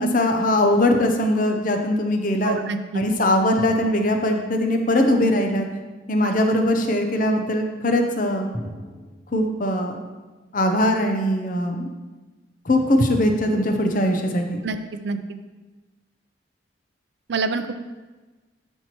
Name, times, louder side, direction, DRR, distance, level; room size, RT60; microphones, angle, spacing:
voice 1, 0.0-2.6 2.9-5.7 6.1-8.5 9.3-10.0 10.5-11.9 12.7-14.6, left 1 dB, 45° left, 4 dB, 0.7 m, -21 dB
voice 2, 2.4-3.0 14.6-14.8 15.0-15.2 17.3-17.7, right 4 dB, 60° right, 9 dB, 0.5 m, -25 dB
sound 1, 3.6-5.2 8.5-9.1, equal, 10° left, 0.8 m, -39 dB
12.0 x 4.5 x 3.0 m, 1.2 s
head